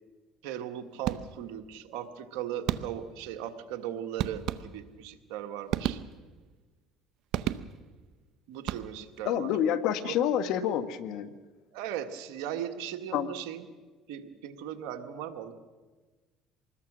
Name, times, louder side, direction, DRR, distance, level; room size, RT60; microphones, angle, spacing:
voice 1, 0.4-6.0 8.5-9.5 10.0-10.2 11.7-13.6 14.1-15.5, right 10 dB, 80° right, 6 dB, 1.5 m, -38 dB
sound 1, 1.0-1.6 2.7-3.2 4.2-5.1 5.7-6.5 7.3-8.0 8.6-9.2, right 12 dB, 65° right, 0.8 m, -34 dB
voice 2, 9.2-11.3 13.1-13.3, left 9 dB, 70° left, 11 dB, 1.4 m, -28 dB
25.0 x 20.5 x 6.2 m, 1.3 s
supercardioid pair, 90°, 0 cm